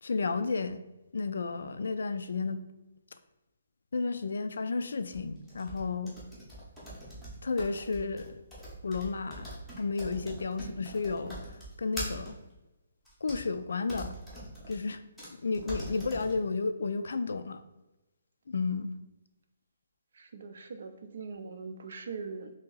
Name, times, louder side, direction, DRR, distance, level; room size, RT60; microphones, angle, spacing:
voice 1, 0.0-0.8 1.1-2.6 3.9-6.2 7.4-8.4 8.8-9.5 9.8-11.5 11.8-12.4 13.2-14.2 14.7-15.0 15.4-17.6 18.5-19.0, left 4 dB, 70° left, 11 dB, 0.3 m, -32 dB
sound 1, 5.1-12.3 13.1-13.4 13.9-14.8 15.2-15.3 15.5-16.4, equal, ahead, 0.7 m, -42 dB
voice 2, 20.3-22.5, right 4 dB, 50° right, 7 dB, 0.4 m, -41 dB
2.9 x 2.8 x 3.8 m, 1.0 s
hypercardioid pair, 180°, 0 cm